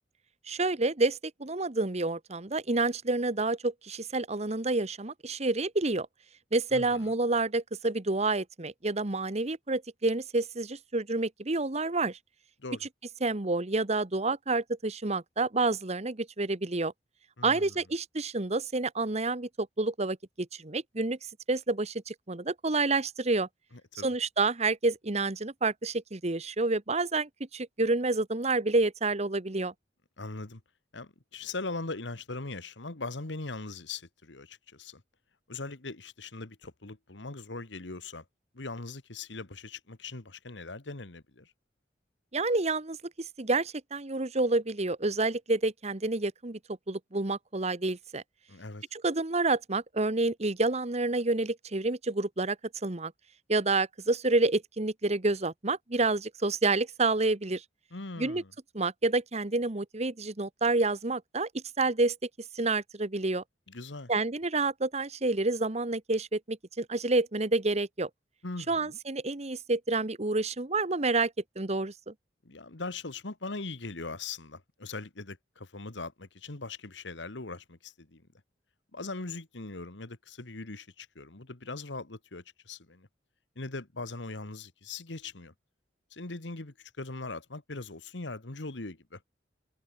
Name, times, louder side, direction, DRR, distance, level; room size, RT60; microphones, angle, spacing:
voice 1, 0.5-6.1 6.5-12.2 13.2-16.9 17.4-23.5 24.0-29.7 42.3-46.6 46.9-48.2 48.9-52.6 52.8-53.1 53.5-57.6 58.2-58.4 58.7-62.3 62.5-63.4 64.1-68.1 68.7-72.1, right 3 dB, 35° right, 1.3 m, -29 dB
voice 2, 6.7-7.2 12.6-12.9 17.4-17.8 23.7-24.1 30.2-30.6 30.9-35.0 35.5-38.3 38.5-41.5 48.5-48.8 57.9-58.5 63.7-64.1 68.4-69.0 72.4-78.2 78.9-83.1 83.6-85.5 86.1-89.2, left 3 dB, 80° left, 1.7 m, -40 dB
head